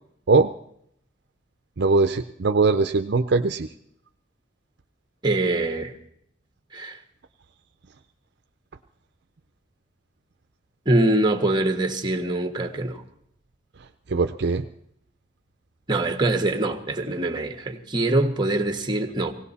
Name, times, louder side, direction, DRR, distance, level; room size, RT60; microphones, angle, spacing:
voice 1, 1.8-3.7 14.1-14.6, right 3 dB, 60° right, 0.6 m, -21 dB
voice 2, 5.2-5.9 6.7-7.0 10.8-13.0 15.9-19.3, right 2 dB, 25° right, 1.4 m, -23 dB
18.0 x 17.5 x 4.2 m
head